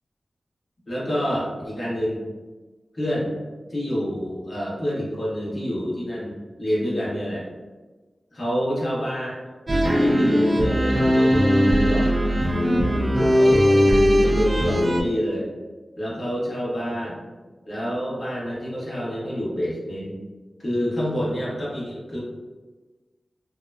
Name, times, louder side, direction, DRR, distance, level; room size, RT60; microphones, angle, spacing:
voice 1, 0.9-2.2 2.9-3.3 3.7-7.4 8.3-9.3 9.8-12.4 12.9-13.8 14.1-15.5 16.0-17.2 17.7-20.2 20.6-22.2, equal, 45° left, -7 dB, 1.1 m, -27 dB
sound 1, 9.7-15.0, equal, 40° right, 0.4 m, -19 dB
2.9 x 2.1 x 2.3 m, 1.3 s
cardioid pair, 55°, 0 cm